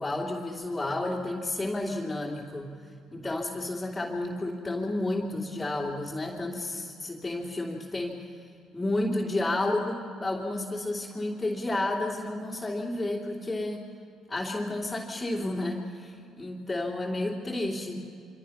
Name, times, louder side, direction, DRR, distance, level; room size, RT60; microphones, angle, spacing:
voice 1, 0.0-2.7 3.1-8.2 8.7-13.8 14.3-18.0, left 2 dB, 15° left, -4 dB, 3.0 m, -31 dB
25.5 x 25.0 x 5.8 m, 2.5 s
supercardioid pair, 80°, 0 cm